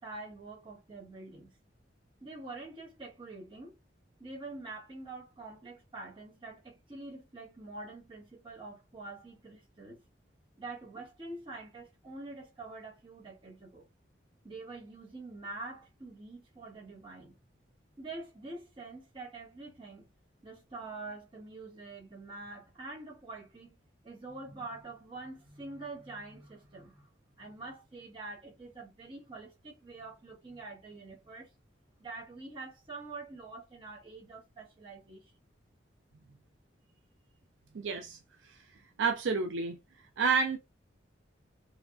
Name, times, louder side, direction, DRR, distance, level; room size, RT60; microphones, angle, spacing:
voice 1, 0.0-1.5 2.2-3.8 4.2-10.0 10.6-13.9 14.4-17.3 18.0-20.1 20.4-23.8 24.0-27.1 27.4-31.5 32.0-35.3, right 3 dB, 30° right, 1.2 m, -46 dB
voice 2, 37.7-38.2 39.0-39.8 40.2-40.6, right 5 dB, 90° right, 0.4 m, -29 dB
3.3 x 2.3 x 2.4 m
head